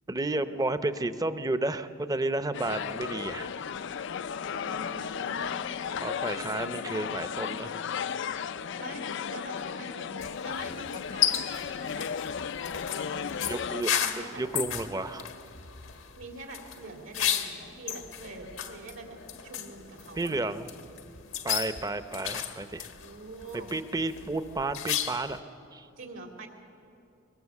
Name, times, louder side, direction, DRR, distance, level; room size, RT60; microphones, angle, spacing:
voice 1, 0.1-3.5 6.0-7.8 13.4-13.9 14.2-15.3 20.2-20.7 21.4-22.9 23.7-25.4 25.7-25.9, right 2 dB, 20° right, 11 dB, 0.7 m, -32 dB
sound 1, 2.5-13.8, left 7 dB, 65° left, 0.4 m, -35 dB
voice 2, 4.5-5.9 8.8-10.1 10.4-12.1 12.9-13.5 13.9-14.4 16.2-20.5 23.0-23.7 26.0-26.5, right 2 dB, 75° right, 2 dB, 3.1 m, -45 dB
sound 2, 10.2-25.4, left 9 dB, 90° left, 1.5 m, -34 dB
23.0 x 20.5 x 7.3 m, 2.7 s
head